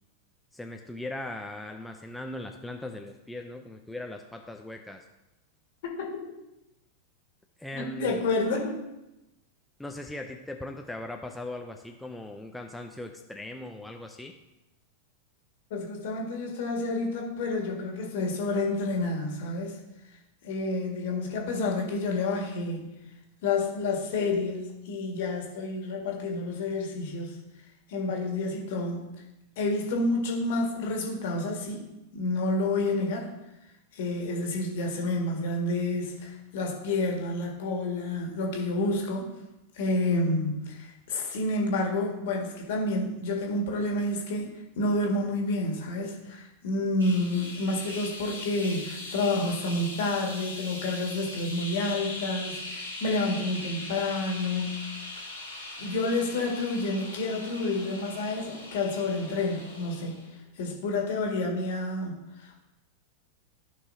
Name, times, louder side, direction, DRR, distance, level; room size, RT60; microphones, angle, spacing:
voice 1, 0.5-5.1 7.6-8.2 9.8-14.3, left 1 dB, 5° left, 3 dB, 0.5 m, -39 dB
voice 2, 7.7-8.8 15.7-19.8 20.4-23.0 23.4-27.4 27.9-29.0 29.6-31.8 32.1-33.3 33.9-39.3 39.8-44.5 44.8-54.8 55.8-60.2 60.6-62.6, left 2 dB, 55° left, 0 dB, 1.8 m, -29 dB
sound 1, 47.0-60.3, left 2 dB, 75° right, 2.4 m, -40 dB
14.5 x 5.5 x 2.7 m, 0.96 s
figure-of-eight pair, 90°, 0 cm